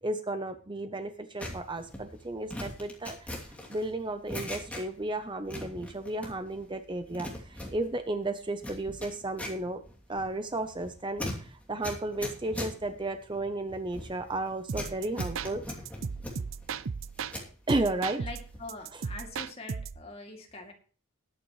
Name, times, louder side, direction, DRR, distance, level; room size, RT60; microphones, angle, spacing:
voice 1, 0.0-3.3 3.7-9.8 10.1-15.8 17.7-18.2 18.9-19.0, right 2 dB, 20° right, 8 dB, 0.8 m, -33 dB
sound 1, 1.4-5.2 5.4-6.6 6.9-17.5 18.0-18.8 19.1-19.4, left 1 dB, 5° left, 2.8 m, -41 dB
sound 2, 14.7-17.4 17.7-20.0, right 5 dB, 65° right, 0.5 m, -36 dB
voice 2, 18.1-20.7, left 2 dB, 30° left, 1 dB, 2.7 m, -43 dB
20.0 x 9.2 x 3.2 m, 0.39 s
head